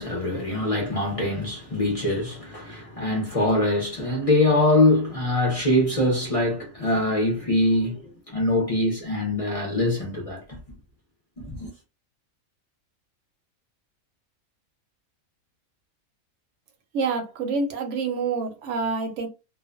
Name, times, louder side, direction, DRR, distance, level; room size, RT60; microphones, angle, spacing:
voice 1, 0.0-10.6 11.4-11.7, left 1 dB, 40° left, 0.5 m, -23 dB
voice 2, 16.9-19.3, right 4 dB, 65° right, 0.9 m, -27 dB
2.4 x 2.1 x 2.4 m
omnidirectional pair, 1.5 m